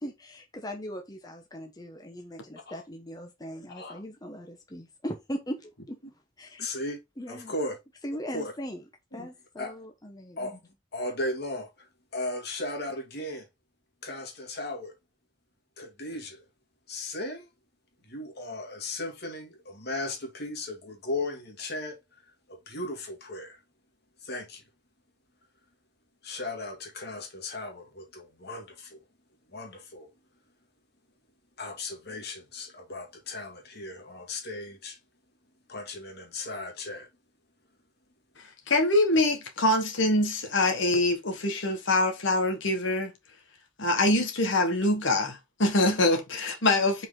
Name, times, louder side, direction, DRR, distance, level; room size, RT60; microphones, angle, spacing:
voice 1, 0.0-6.0 6.4-6.7 7.2-7.5 8.0-8.8 9.1-10.4, equal, 20° left, 1.1 m, -39 dB
voice 2, 3.7-4.0 6.6-7.0 7.3-7.8 8.3-8.5 9.1-9.3 9.6-9.8 10.4-13.5 14.0-14.9 15.8-16.4 16.9-17.5 18.0-23.6 24.2-24.6 26.2-29.0 29.5-30.1 31.6-35.0 35.7-37.1, left 2 dB, 55° left, 2.4 m, -36 dB
voice 3, 38.4-43.1 43.8-47.1, left 2 dB, 70° left, 1.6 m, -24 dB
5.7 x 4.7 x 3.7 m
head